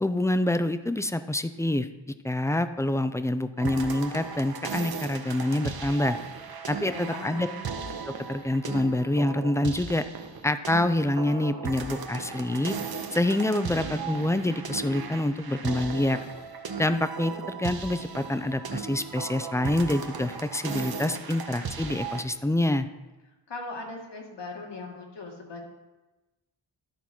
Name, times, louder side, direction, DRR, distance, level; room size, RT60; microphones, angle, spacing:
voice 1, 0.0-1.9 2.2-6.2 6.7-7.5 8.3-10.0 10.4-12.7 13.1-16.2 16.8-22.9, left 1 dB, 5° left, 11 dB, 0.4 m, -26 dB
sound 1, 3.6-22.2, right 5 dB, 55° right, 1.0 m, -37 dB
voice 2, 6.8-7.6 23.5-25.7, left 3 dB, 65° left, 0 dB, 2.0 m, -39 dB
Acoustic guitar, 13.7-17.3, right 2 dB, 25° right, 1.3 m, -46 dB
12.0 x 4.2 x 6.0 m, 1.1 s
cardioid pair, 80°, 45 cm